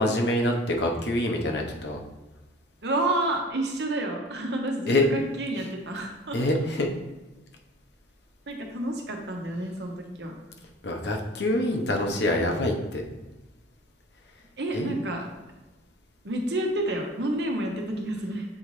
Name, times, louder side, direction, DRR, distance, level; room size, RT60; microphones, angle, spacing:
voice 1, 0.0-2.0 4.9-5.1 6.3-6.9 10.8-13.0 14.7-14.9, left 1 dB, 70° left, 1 dB, 1.0 m, -25 dB
voice 2, 2.8-6.4 8.5-10.3 14.6-15.3 16.2-18.5, right 1 dB, 65° right, 2 dB, 1.0 m, -29 dB
7.8 x 4.0 x 3.2 m, 1.1 s
head